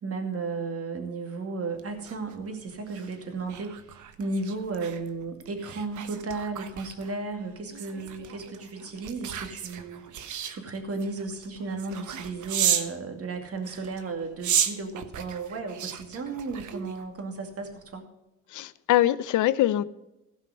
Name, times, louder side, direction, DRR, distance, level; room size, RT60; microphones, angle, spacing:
voice 1, 0.0-18.1, right 3 dB, 50° right, 5 dB, 2.5 m, -34 dB
sound 1, 1.8-13.0 13.6-17.2 17.6-17.9, right 9 dB, 75° right, 1.2 m, -34 dB
voice 2, 18.5-19.8, left 13 dB, 80° left, 14 dB, 0.7 m, -23 dB
16.0 x 5.6 x 6.6 m, 0.91 s
cardioid pair, 90°, 30 cm